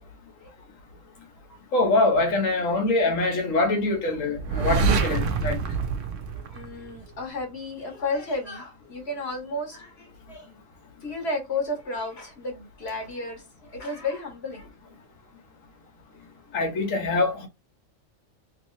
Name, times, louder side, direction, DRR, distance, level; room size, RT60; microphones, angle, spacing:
voice 1, 1.7-5.6 16.5-17.5, left 2 dB, 75° left, 1.6 m, -24 dB
sound 1, 4.4-7.2, right 5 dB, 70° right, 1.0 m, -26 dB
voice 2, 6.3-10.4 11.0-13.4 13.7-14.7, left 2 dB, 55° left, 1.4 m, -32 dB
3.2 x 2.9 x 3.1 m
omnidirectional pair, 1.4 m